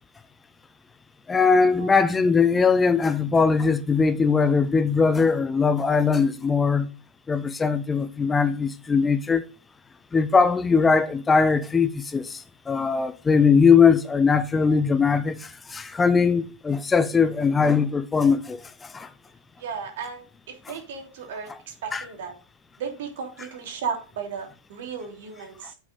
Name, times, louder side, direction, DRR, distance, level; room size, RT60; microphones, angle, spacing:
voice 1, 1.3-6.9 7.3-9.4 10.1-19.1 21.5-21.6 21.9-22.1, left 5 dB, 15° left, 0.7 m, -20 dB
voice 2, 19.6-22.3 22.8-25.7, right 6 dB, 65° right, 2.9 m, -35 dB
8.2 x 6.0 x 5.2 m
hypercardioid pair, 105°, 0 cm